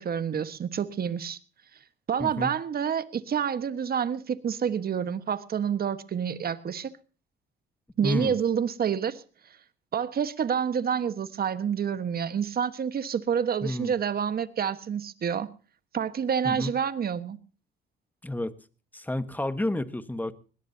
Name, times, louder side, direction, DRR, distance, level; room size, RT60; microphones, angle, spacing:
voice 1, 0.0-1.4 2.1-6.9 8.0-9.2 9.9-15.5 15.9-17.4, right 7 dB, 50° right, 1.4 m, -28 dB
voice 2, 2.2-2.5 8.0-8.3 13.6-13.9 16.4-16.7 18.2-18.5 18.9-20.3, left 1 dB, 10° left, 1.4 m, -30 dB
20.5 x 18.0 x 2.8 m
cardioid pair, 90°, 20 cm